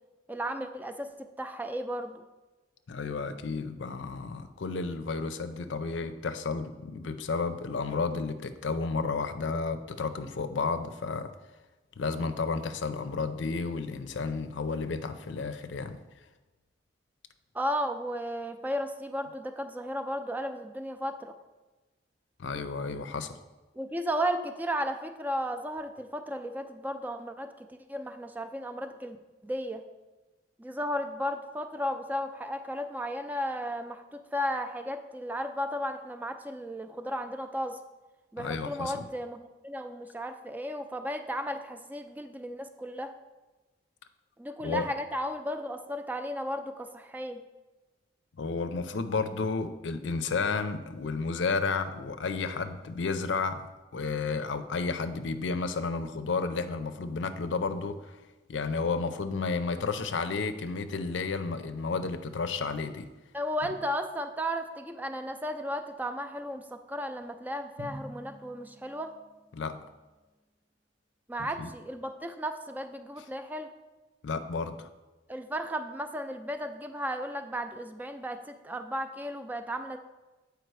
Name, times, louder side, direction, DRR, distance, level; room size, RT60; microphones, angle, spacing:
voice 1, 0.3-2.2 17.5-21.3 23.7-29.2 29.4-29.8 30.6-37.8 38.3-43.1 44.4-47.4 63.3-69.1 71.3-73.7 75.3-80.0, equal, 10° right, 7 dB, 0.4 m, -34 dB
voice 2, 2.9-11.3 12.0-16.0 22.4-23.4 38.4-39.1 44.6-44.8 48.4-58.2 58.5-63.1 69.5-69.8 71.6-71.7 74.2-74.9, left 4 dB, 90° left, 10 dB, 0.5 m, -32 dB
Drum, 67.8-69.5, equal, 85° right, 0.9 m, -46 dB
7.7 x 4.8 x 4.7 m, 1.2 s
head